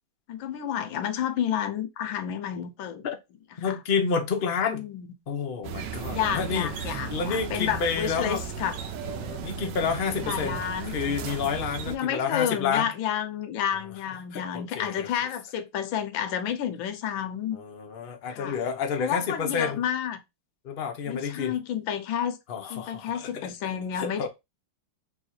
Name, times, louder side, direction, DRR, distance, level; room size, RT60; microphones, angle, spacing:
voice 1, 0.3-3.0 3.6-3.8 4.7-5.1 6.1-8.8 10.2-11.2 11.9-17.6 18.3-18.6 19.0-20.2 21.1-22.4 22.7-24.3, left 9 dB, 85° left, 1.5 m, -30 dB
voice 2, 3.6-4.9 5.3-8.4 9.1-12.9 14.3-15.1 17.5-19.8 20.6-21.5 22.5-24.3, left 6 dB, 65° left, 0.5 m, -30 dB
sound 1, 5.6-12.0, right 7 dB, 70° right, 1.2 m, -35 dB
3.5 x 2.8 x 4.5 m
omnidirectional pair, 2.1 m